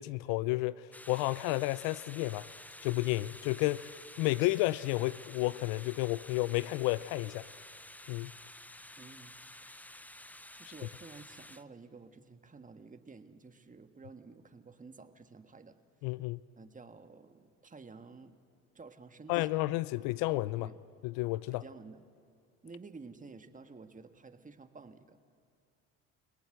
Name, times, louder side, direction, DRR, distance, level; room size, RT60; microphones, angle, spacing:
voice 1, 0.0-2.5 2.8-7.4 8.1-8.3 16.0-16.4 19.3-20.7 21.0-21.6, left 19 dB, 75° left, 0.5 m, -31 dB
sound 1, 0.9-11.6, left 1 dB, 5° left, 0.6 m, -51 dB
voice 2, 9.0-9.7 10.5-15.8 16.6-18.3 18.7-19.5 20.6-20.8 21.5-22.0 22.6-25.2, right 4 dB, 20° right, 1.6 m, -52 dB
29.0 x 18.0 x 7.8 m
hypercardioid pair, 70°, 36 cm